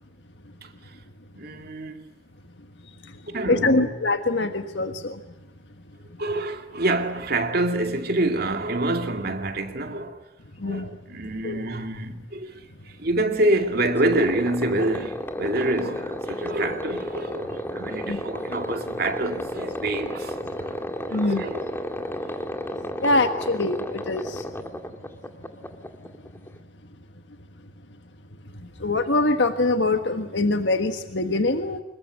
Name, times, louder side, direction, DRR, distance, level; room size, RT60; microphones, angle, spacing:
voice 1, 0.6-0.9 1.3-2.0 3.3-3.9 6.2-10.2 10.6-20.4 21.1-21.7 22.2-22.3, right 1 dB, 60° right, 2.4 m, -27 dB
voice 2, 3.5-5.2 10.6-11.0 11.4-11.6 18.0-18.2 21.1-21.5 23.0-24.4 28.8-31.8, left 2 dB, 75° left, 1.5 m, -23 dB
sound 1, 14.0-26.6, equal, 15° left, 2.0 m, -33 dB
26.5 x 22.5 x 9.8 m
head